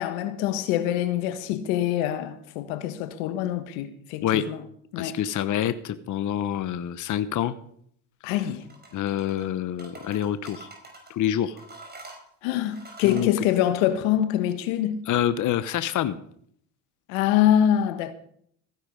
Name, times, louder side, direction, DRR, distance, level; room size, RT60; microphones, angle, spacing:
voice 1, 0.0-4.6 4.9-5.2 8.2-8.6 12.4-15.0 17.1-18.1, left 11 dB, 85° left, 1.4 m, -25 dB
voice 2, 5.0-7.5 8.9-10.7 11.1-11.6 13.0-13.3 15.1-16.2, left 11 dB, 50° left, 1.0 m, -26 dB
sound 1, 8.6-9.5 9.8-11.1 11.6-13.3, right 2 dB, 25° right, 5.0 m, -45 dB
15.5 x 10.5 x 5.2 m
supercardioid pair, 80°, 40 cm